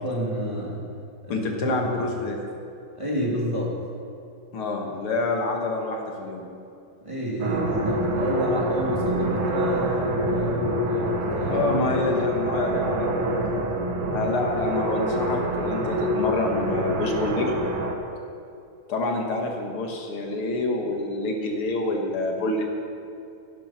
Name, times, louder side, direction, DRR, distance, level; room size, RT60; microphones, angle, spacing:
voice 1, 0.0-0.8 1.2-2.1 2.9-3.7 7.0-11.6 12.2-12.4, right 1 dB, 15° right, -5 dB, 2.8 m, -29 dB
voice 2, 1.3-2.4 4.5-6.4 11.5-13.8 14.1-17.5 18.9-22.6, left 2 dB, 80° left, 1 dB, 2.5 m, -27 dB
rev spaceship drone, 7.4-17.9, equal, 90° right, 2.2 m, -26 dB
14.5 x 11.5 x 6.0 m, 2.6 s
omnidirectional pair, 2.4 m